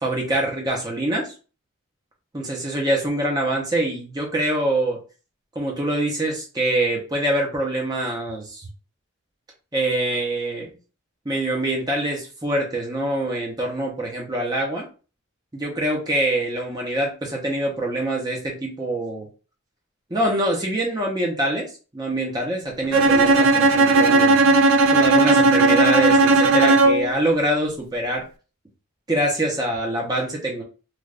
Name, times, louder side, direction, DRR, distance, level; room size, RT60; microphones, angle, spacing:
voice 1, 0.0-1.3 2.3-5.0 5.5-8.7 9.7-10.7 11.2-14.9 15.5-19.3 20.1-24.4 24.9-28.2 29.1-30.6, right 1 dB, 20° right, -1 dB, 0.8 m, -24 dB
Bowed string instrument, 22.9-27.2, right 2 dB, 75° right, 0.4 m, -16 dB
3.3 x 2.5 x 2.4 m, 0.34 s
head